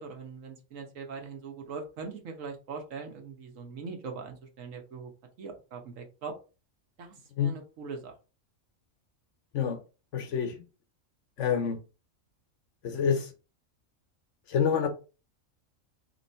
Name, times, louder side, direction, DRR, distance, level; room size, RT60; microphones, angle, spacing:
voice 1, 0.0-5.1 5.4-6.3 7.0-7.1 7.4-8.1, right 5 dB, 75° right, 1.3 m, -41 dB
voice 2, 10.1-10.6 11.4-11.8 12.8-13.3 14.5-14.9, left 7 dB, 70° left, 1.1 m, -27 dB
3.1 x 3.0 x 4.2 m
omnidirectional pair, 1.4 m